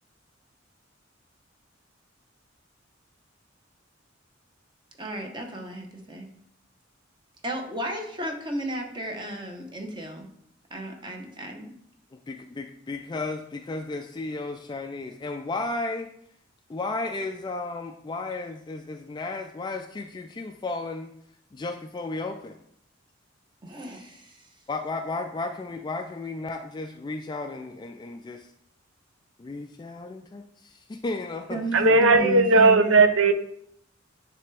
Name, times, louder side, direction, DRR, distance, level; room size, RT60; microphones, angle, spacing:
voice 1, 5.0-6.3 7.4-10.3 10.7-11.7 23.6-24.4 31.5-33.0, right 1 dB, 25° right, 3 dB, 0.9 m, -33 dB
voice 2, 12.3-16.1 16.7-21.1 21.5-22.6 24.7-28.5 29.4-32.0, left 3 dB, 20° left, 5 dB, 0.3 m, -34 dB
voice 3, 31.7-33.3, right 3 dB, 80° right, 8 dB, 0.7 m, -17 dB
9.6 x 3.4 x 3.4 m, 0.70 s
head